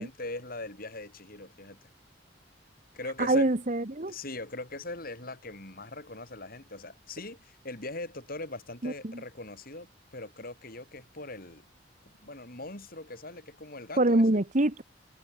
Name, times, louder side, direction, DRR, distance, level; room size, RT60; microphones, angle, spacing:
voice 1, 0.0-1.8 2.9-3.5 4.1-11.6 12.2-14.2, left 2 dB, 50° left, 7.0 m, -41 dB
voice 2, 3.2-4.1 8.8-9.2 14.0-14.8, right 2 dB, 40° right, 1.4 m, -25 dB
head